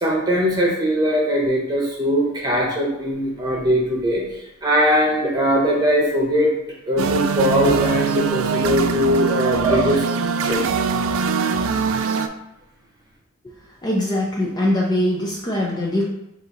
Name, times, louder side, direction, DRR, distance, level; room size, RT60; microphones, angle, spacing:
voice 1, 0.0-4.2 4.6-6.5 6.9-10.0 10.4-10.6, equal, 20° right, -4 dB, 1.0 m, -20 dB
sound 1, 7.0-12.3, right 5 dB, 65° right, 0.3 m, -22 dB
voice 2, 13.8-16.0, left 1 dB, 20° left, -3 dB, 0.5 m, -22 dB
3.9 x 2.7 x 4.0 m, 0.88 s
head